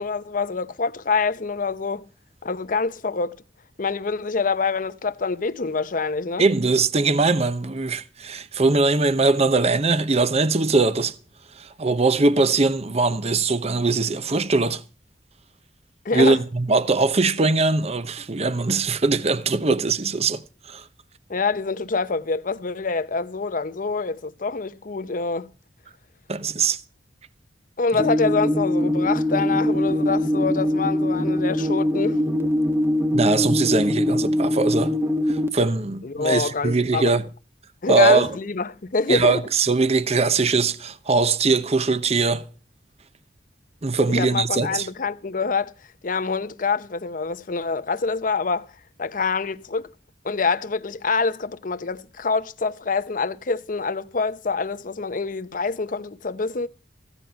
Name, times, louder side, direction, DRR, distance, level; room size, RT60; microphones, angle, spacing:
voice 1, 0.0-2.1 2.4-3.4 3.8-6.5 16.0-16.4 21.3-25.5 27.8-32.2 36.0-37.1 37.8-39.4 44.1-45.7 46.0-48.7 49.0-49.9 50.2-56.7, left 4 dB, 50° left, 0.8 m, -26 dB
voice 2, 6.4-11.1 11.6-14.8 16.1-20.4 20.7-20.8 26.3-26.8 33.1-34.9 35.3-37.2 37.9-38.3 39.1-42.5 43.8-44.9, right 3 dB, 35° right, 0.8 m, -21 dB
sound 1, 28.0-35.5, left 1 dB, 15° right, 1.1 m, -22 dB
15.5 x 9.8 x 5.6 m
head